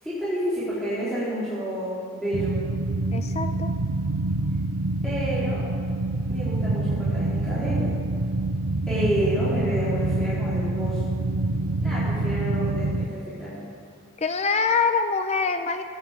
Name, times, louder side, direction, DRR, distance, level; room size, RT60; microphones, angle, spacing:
voice 1, 0.0-2.6 5.0-5.6 6.3-7.9 8.9-11.1 11.8-13.7, right 1 dB, 5° left, -12 dB, 4.1 m, -29 dB
sound 1, 2.3-13.1, right 2 dB, 70° right, 0.6 m, -26 dB
voice 2, 3.1-3.7 14.2-15.8, left 4 dB, 30° left, 8 dB, 0.6 m, -24 dB
15.0 x 9.9 x 7.6 m, 2.3 s
head